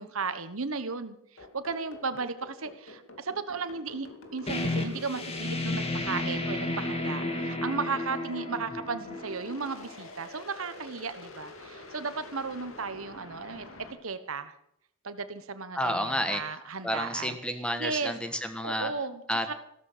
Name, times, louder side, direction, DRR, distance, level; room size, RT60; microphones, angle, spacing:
voice 1, 0.0-4.1 4.3-14.5 15.0-17.4 17.8-18.1 18.6-19.5, right 4 dB, 75° right, 11 dB, 1.3 m, -35 dB
sound 1, 1.4-13.9, left 2 dB, 70° left, 2.7 m, -47 dB
sound 2, 4.5-9.9, left 2 dB, 30° left, 2.5 m, -32 dB
voice 2, 15.7-16.4 16.8-18.9 19.3-19.5, equal, 5° left, 8 dB, 1.5 m, -30 dB
15.5 x 13.5 x 6.8 m, 0.72 s
head